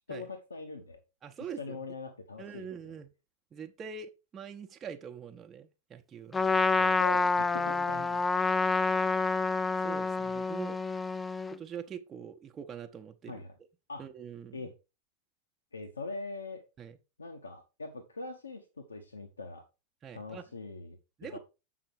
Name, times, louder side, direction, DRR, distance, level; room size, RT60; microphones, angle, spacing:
voice 1, 0.1-1.0 1.6-2.7 6.7-8.3 13.3-13.5 13.9-14.0 14.5-14.7 15.7-16.6 17.2-19.6 20.1-21.4, left 3 dB, 75° left, 1.0 m, -42 dB
voice 2, 1.2-1.8 2.4-3.1 3.5-6.4 7.5-8.1 9.8-10.8 11.5-13.4 14.0-14.6 16.8-17.0 20.0-20.4 21.2-21.4, right 7 dB, 25° right, 0.9 m, -44 dB
Trumpet, 6.3-11.6, left 4 dB, 15° left, 0.4 m, -28 dB
7.7 x 5.9 x 4.6 m
figure-of-eight pair, 90°, 0 cm